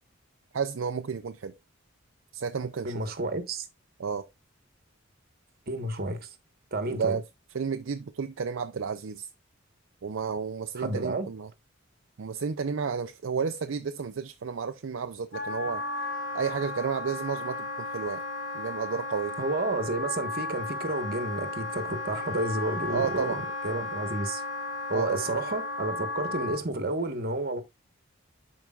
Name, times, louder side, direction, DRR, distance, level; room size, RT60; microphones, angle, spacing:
voice 1, 0.5-1.5 2.3-3.0 4.0-4.3 6.9-7.2 7.5-9.3 10.0-11.5 12.2-15.8 16.3-18.2 18.5-19.4 22.9-23.4 24.9-25.2, right 6 dB, 65° right, 0.5 m, -32 dB
voice 2, 2.8-3.7 5.7-6.3 6.7-7.2 10.8-11.3 19.4-24.4 24.9-27.6, right 2 dB, 50° right, 1.2 m, -31 dB
Wind instrument woodwind instrument, 15.3-26.6, left 2 dB, 65° left, 2.2 m, -34 dB
11.5 x 4.8 x 2.4 m
head